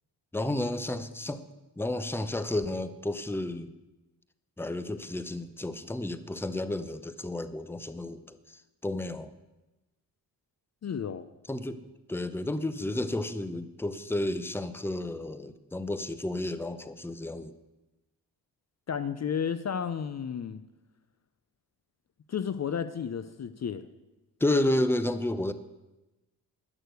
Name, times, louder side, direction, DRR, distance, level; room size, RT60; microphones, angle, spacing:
voice 1, 0.3-1.4 1.8-3.7 4.6-9.3 11.5-17.5 24.4-25.5, left 1 dB, 5° left, 13 dB, 0.8 m, -31 dB
voice 2, 10.8-11.3 18.9-20.6 22.3-23.9, left 7 dB, 40° left, 13 dB, 0.7 m, -32 dB
11.0 x 6.6 x 8.1 m, 1.0 s
cardioid pair, 60°, 40 cm